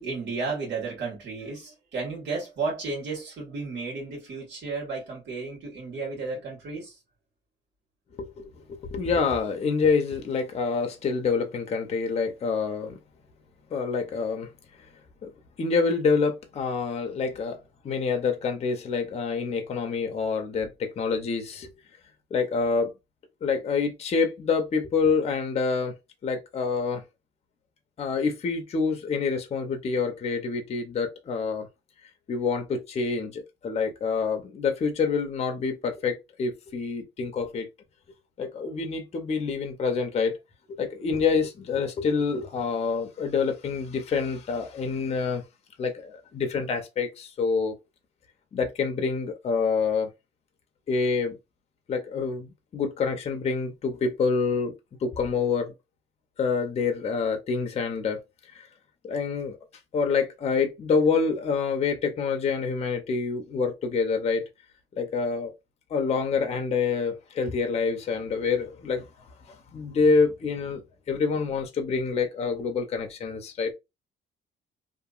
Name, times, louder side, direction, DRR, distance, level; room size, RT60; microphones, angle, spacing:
voice 1, 0.0-7.0, right 4 dB, 65° right, 1.6 m, -33 dB
voice 2, 8.2-13.0 13.7-14.5 15.2-15.3 15.6-17.6 17.8-21.7 22.3-22.9 23.4-25.9 26.2-27.0 28.0-31.7 32.3-37.7 38.4-40.4 40.7-45.4 45.8-47.7 48.5-50.1 50.9-51.4 51.9-54.7 55.0-55.7 56.4-58.2 58.5-58.7 59.0-59.6 59.9-64.4 65.0-65.5 65.9-69.1 69.4-70.8 71.1-73.7, left 5 dB, 30° left, 0.6 m, -27 dB
2.8 x 2.5 x 2.4 m
cardioid pair, 175°, 20 cm